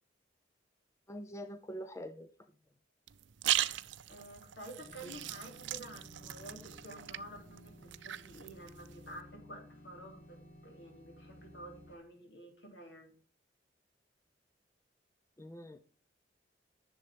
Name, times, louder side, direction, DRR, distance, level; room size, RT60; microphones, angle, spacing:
voice 1, 1.1-2.3 15.4-15.8, equal, 15° left, 10 dB, 0.6 m, -44 dB
sound 1, 3.1-9.2, right 13 dB, 85° right, 0.5 m, -39 dB
voice 2, 4.1-10.4 10.6-13.1, right 1 dB, 70° left, 2 dB, 3.8 m, -50 dB
sound 2, 4.8-12.0, left 1 dB, 45° left, 2.4 m, -56 dB
10.5 x 7.0 x 5.0 m, 0.39 s
head